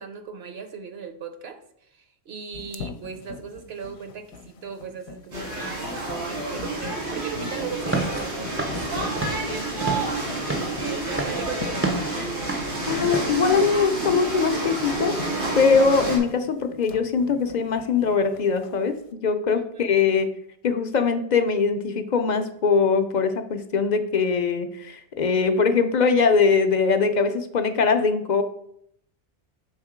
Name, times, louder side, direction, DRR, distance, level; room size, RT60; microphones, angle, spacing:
voice 1, 0.0-1.6 1.9-5.9 6.3-12.1 19.5-19.9, right 6 dB, 65° right, 8 dB, 0.9 m, -38 dB
sound 1, 2.5-18.8, left 6 dB, 75° left, 0.8 m, -40 dB
sound 2, 5.3-16.2, right 2 dB, 90° right, 2.4 m, -29 dB
Walk footsteps / Siren, 7.8-13.4, right 2 dB, 20° right, 0.4 m, -31 dB
voice 2, 12.8-15.2 15.6-18.9 19.2-20.3 20.6-28.4, left 5 dB, 55° left, 8 dB, 0.5 m, -22 dB
6.4 x 3.6 x 4.9 m, 0.71 s
omnidirectional pair, 1.2 m